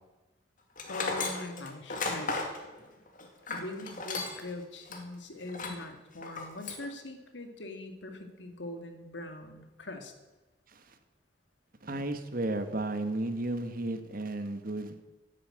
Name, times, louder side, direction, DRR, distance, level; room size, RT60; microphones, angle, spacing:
Tools, 0.8-4.5 4.9-5.0 5.5-5.9 6.2-6.9, left 3 dB, 45° left, 2.3 m, -35 dB
voice 1, 0.9-2.5 3.5-10.1, left 2 dB, 75° left, 6 dB, 2.1 m, -42 dB
voice 2, 11.8-14.9, right 2 dB, 50° right, 8 dB, 1.2 m, -33 dB
11.0 x 9.7 x 8.8 m, 1.1 s
head